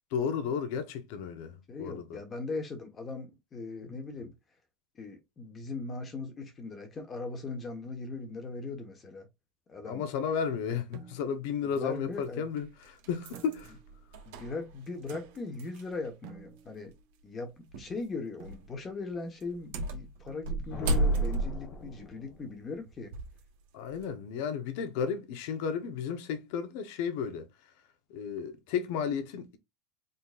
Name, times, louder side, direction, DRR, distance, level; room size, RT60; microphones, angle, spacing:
voice 1, 0.1-2.2 3.8-4.0 9.9-13.7 23.7-27.4 28.1-29.6, left 7 dB, 70° left, 1.0 m, -33 dB
voice 2, 1.7-4.3 4.9-9.3 9.7-10.0 11.6-12.5 14.3-16.9 17.2-23.1, left 3 dB, 25° left, 1.2 m, -39 dB
sound 1, 10.9-11.6 13.3-14.1 15.1-15.7 16.2-17.0 18.4-18.7 20.3-20.9, right 7 dB, 65° right, 0.9 m, -52 dB
sound 2, 11.8-11.9 12.6-16.1 16.4-16.5 17.7-18.0 18.4-18.7 19.4-23.4 23.9-24.1, right 2 dB, 85° right, 1.5 m, -33 dB
sound 3, 20.7-22.7, left 4 dB, 45° left, 1.2 m, -43 dB
3.9 x 3.9 x 2.5 m
cardioid pair, 155°, 0 cm